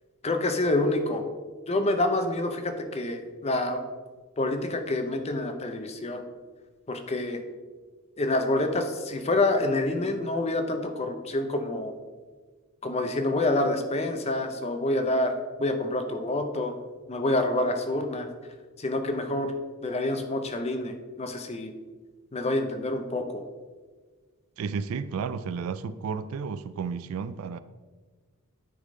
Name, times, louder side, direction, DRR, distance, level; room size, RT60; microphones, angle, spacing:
voice 1, 0.2-1.2 1.7-3.8 4.4-6.2 6.9-7.4 8.2-11.9 12.8-16.7 17.1-18.3 18.8-19.5 19.8-21.7 22.3-23.4, left 2 dB, 30° left, 0.6 m, -27 dB
voice 2, 24.6-27.6, right 5 dB, 70° right, 0.3 m, -32 dB
9.6 x 3.6 x 3.7 m
head